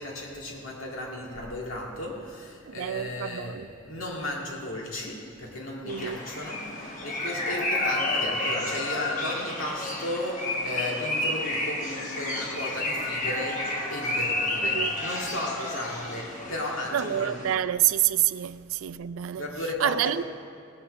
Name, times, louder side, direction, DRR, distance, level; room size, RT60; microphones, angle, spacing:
voice 1, 0.0-13.6 13.9-17.6 19.4-20.2, left 1 dB, 85° left, 2.0 m, -35 dB
voice 2, 2.7-3.7 5.8-6.2 14.6-14.9 16.9-19.5 19.8-20.2, right 11 dB, 85° right, 0.4 m, -27 dB
sound 1, 5.9-17.5, left 1 dB, 40° left, 1.2 m, -31 dB
18.0 x 6.3 x 6.5 m
head